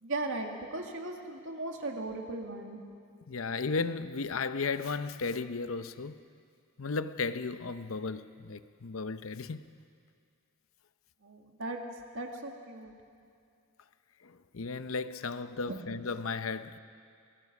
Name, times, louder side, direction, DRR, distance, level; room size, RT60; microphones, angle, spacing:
voice 1, 0.0-2.8 11.2-11.8 12.1-12.9 15.7-15.8, right 2 dB, 65° right, 2.2 m, -37 dB
voice 2, 3.3-6.1 6.8-9.6 14.2-16.8, left 4 dB, 65° left, 0.7 m, -35 dB
24.0 x 20.0 x 6.1 m
head